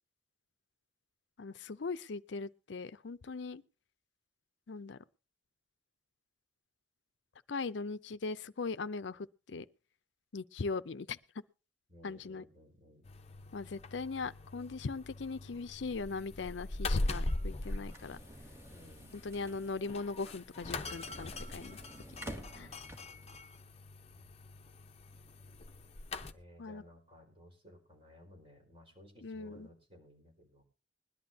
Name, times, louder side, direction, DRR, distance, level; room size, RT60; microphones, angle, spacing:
voice 1, 1.4-3.6 4.7-5.0 7.5-9.7 10.3-11.2 12.0-12.4 13.5-18.2 19.2-21.8 22.5-22.7 26.6-26.8 29.2-29.7, left 4 dB, 70° left, 0.6 m, -39 dB
voice 2, 11.9-13.0 18.7-19.2 24.1-24.3 26.3-30.6, equal, 30° right, 4.6 m, -58 dB
sound 1, 13.0-26.3, left 2 dB, 35° left, 0.8 m, -41 dB
sound 2, 16.8-23.4, right 1 dB, 15° right, 1.8 m, -51 dB
20.5 x 11.5 x 2.8 m
head